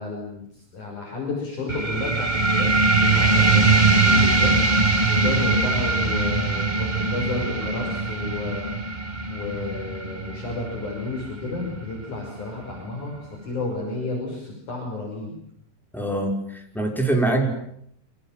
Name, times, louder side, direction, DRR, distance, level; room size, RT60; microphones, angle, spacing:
voice 1, 0.0-4.6 5.1-8.6 9.3-15.4, left 3 dB, 50° left, 0 dB, 7.1 m, -31 dB
sound 1, 1.7-12.7, right 3 dB, 45° right, 0.5 m, -22 dB
voice 2, 15.9-17.5, right 2 dB, ahead, 2 dB, 5.1 m, -24 dB
28.5 x 26.5 x 7.6 m, 0.72 s
omnidirectional pair, 4.7 m